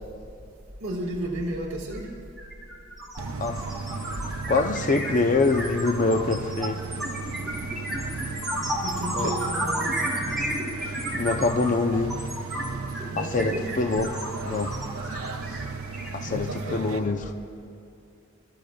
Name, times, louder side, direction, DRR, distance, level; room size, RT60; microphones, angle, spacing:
voice 1, 0.8-2.1 8.8-10.1 13.1-13.7 16.2-17.1, right 1 dB, 60° right, -6 dB, 1.7 m, -33 dB
sound 1, 1.9-2.1 2.4-16.7, right 1 dB, ahead, 3.3 m, -32 dB
sound 2, 3.2-17.0, right 4 dB, 80° right, 0.7 m, -35 dB
voice 2, 4.5-6.8 9.1-9.3 11.2-12.2 13.2-14.1 14.4-14.7 16.1-17.2, left 3 dB, 40° left, 5 dB, 0.6 m, -24 dB
28.5 x 13.5 x 2.3 m, 2.7 s
head